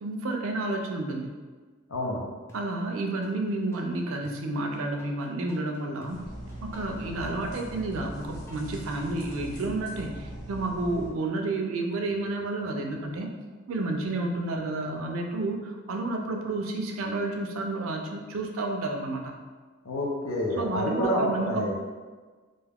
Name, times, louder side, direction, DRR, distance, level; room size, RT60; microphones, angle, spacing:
voice 1, 0.0-1.3 2.5-6.2 6.6-13.3 13.7-19.4 20.6-21.7, right 2 dB, 70° right, 3 dB, 0.4 m, -30 dB
voice 2, 1.9-2.2 19.8-21.7, left 1 dB, 75° left, -2 dB, 0.6 m, -28 dB
sound 1, 2.5-3.3 3.7-9.3, equal, 10° left, 0.3 m, -52 dB
sound 2, 6.1-11.1, right 1 dB, 50° left, 0.9 m, -41 dB
2.6 x 2.3 x 3.4 m, 1.4 s
head